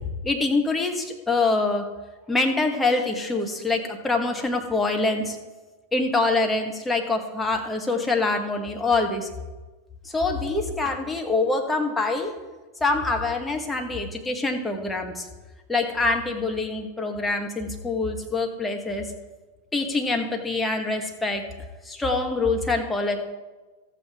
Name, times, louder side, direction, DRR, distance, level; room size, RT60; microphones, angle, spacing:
voice 1, 0.2-1.8 2.3-5.4 5.9-9.3 10.0-12.4 12.8-15.3 15.7-19.1 19.7-21.4 21.8-23.2, left 3 dB, 10° left, 2 dB, 1.4 m, -25 dB
14.0 x 8.2 x 3.5 m, 1.2 s
figure-of-eight pair, 90°, 0 cm